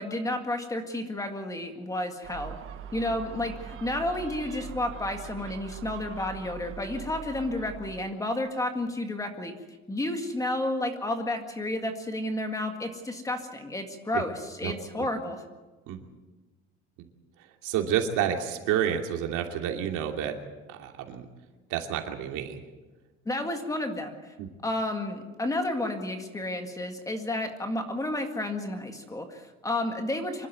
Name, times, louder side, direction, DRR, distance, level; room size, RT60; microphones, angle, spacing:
voice 1, 0.0-2.6 2.9-9.5 9.9-14.3 14.6-15.4 23.3-24.1 24.6-30.5, left 1 dB, 10° left, 5 dB, 1.9 m, -31 dB
Gull seagull, 2.2-8.1, right 8 dB, 45° right, 1.1 m, -42 dB
voice 2, 14.6-15.1 15.9-16.0 17.6-20.4 20.7-21.3 21.7-22.6 24.4-24.5, right 9 dB, 90° right, 4 dB, 2.8 m, -29 dB
26.0 x 12.0 x 9.3 m, 1.2 s
cardioid pair, 170°, 30 cm